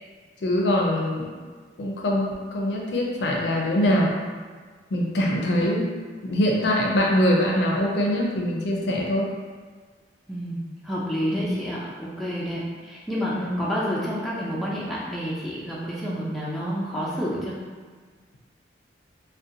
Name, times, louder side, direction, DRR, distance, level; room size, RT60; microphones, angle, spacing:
voice 1, 0.4-1.2 1.8-4.1 4.9-5.9 6.2-9.3 11.3-11.5 13.3-13.7, equal, 70° left, -1 dB, 0.4 m, -23 dB
voice 2, 10.3-17.7, equal, ahead, -7 dB, 0.3 m, -29 dB
2.7 x 2.1 x 2.4 m, 1.5 s
head